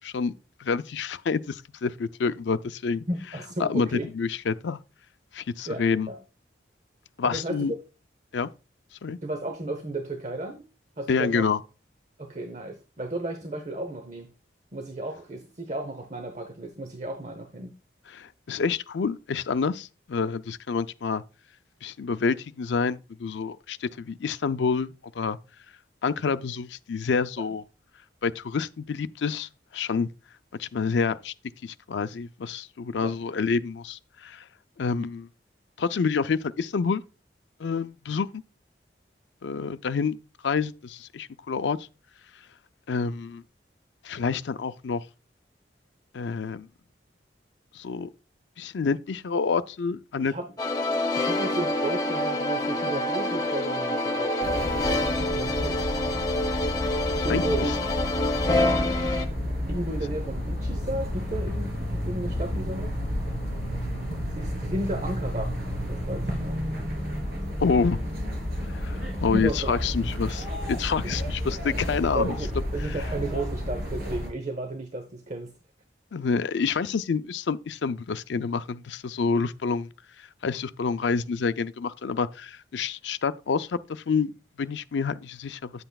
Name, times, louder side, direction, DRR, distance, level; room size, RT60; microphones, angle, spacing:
voice 1, 0.0-0.3 0.6-3.0 3.6-4.8 5.3-6.1 7.2-7.7 8.3-8.5 9.0-9.2 11.1-11.6 18.1-21.2 21.8-25.4 26.0-27.6 28.2-30.1 30.6-31.3 31.6-34.4 34.8-35.3 35.8-37.0 37.6-38.3 39.4-40.2 40.4-41.8 42.9-43.4 44.0-45.0 46.1-46.7 47.7-48.1 48.6-50.3 57.2-57.6 67.6-68.0 68.7-72.4 76.1-79.9 80.2-85.8, left 5 dB, 80° left, 0.5 m, -28 dB
voice 2, 3.1-4.1 5.7-6.2 7.2-7.8 9.2-10.6 11.0-11.5 12.2-14.3 14.7-17.7 33.0-33.1 50.2-50.5 51.1-55.8 57.2-57.7 59.7-63.0 64.3-65.5 65.9-66.6 69.3-69.8 71.0-71.1 72.1-75.5, right 1 dB, 40° right, 0.8 m, -33 dB
sound 1, 50.6-59.3, left 1 dB, 20° left, 1.1 m, -26 dB
sound 2, 54.4-74.3, equal, 60° right, 3.4 m, -31 dB
9.6 x 7.9 x 2.3 m
head